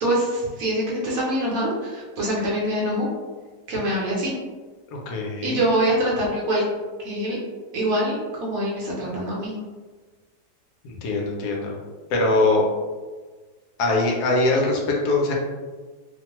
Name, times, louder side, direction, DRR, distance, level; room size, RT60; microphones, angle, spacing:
voice 1, 0.0-3.1 3.7-4.3 5.4-6.6 7.0-7.4 7.7-9.5, right 1 dB, 60° right, -5 dB, 1.0 m, -24 dB
voice 2, 4.9-5.6 10.8-11.8 12.1-12.7 13.8-15.3, left 2 dB, 75° left, -1 dB, 1.1 m, -22 dB
2.9 x 2.1 x 2.9 m, 1.4 s
omnidirectional pair, 1.8 m